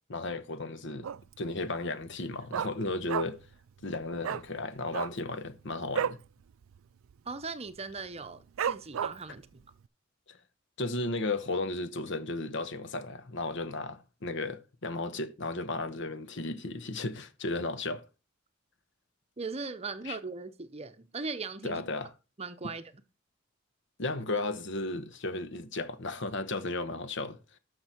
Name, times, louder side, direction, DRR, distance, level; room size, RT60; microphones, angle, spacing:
voice 1, 0.1-1.1 1.4-3.4 3.8-6.2 10.3-10.4 10.8-18.0 20.1-20.2 21.6-22.1 24.0-27.4, left 2 dB, 65° left, 1.1 m, -34 dB
Dog, 1.0-1.5 1.7-1.8 2.1-3.5 3.8-3.9 4.2-4.5 4.8-6.3 6.6-6.8 7.0-7.4 7.9-8.0 8.6-9.4 9.8-9.9, right 8 dB, 85° right, 0.4 m, -33 dB
voice 2, 7.3-9.6 19.4-21.8 22.4-22.9, right 4 dB, 30° right, 0.8 m, -39 dB
12.0 x 6.6 x 4.5 m
head